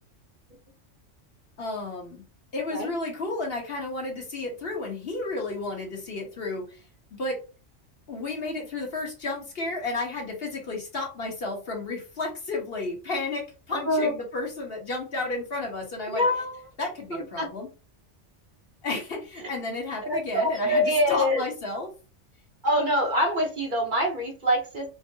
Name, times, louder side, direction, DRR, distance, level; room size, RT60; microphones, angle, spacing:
voice 1, 1.6-2.2 2.5-6.8 7.1-7.4 8.1-16.2 16.8-17.7 18.8-21.9, left 2 dB, 55° left, -1 dB, 1.3 m, -32 dB
voice 2, 13.7-14.1 16.1-16.6 17.4-17.5 20.0-21.4 22.6-24.9, equal, 45° right, 1 dB, 0.9 m, -24 dB
4.5 x 2.0 x 2.6 m, 0.32 s
omnidirectional pair, 1.2 m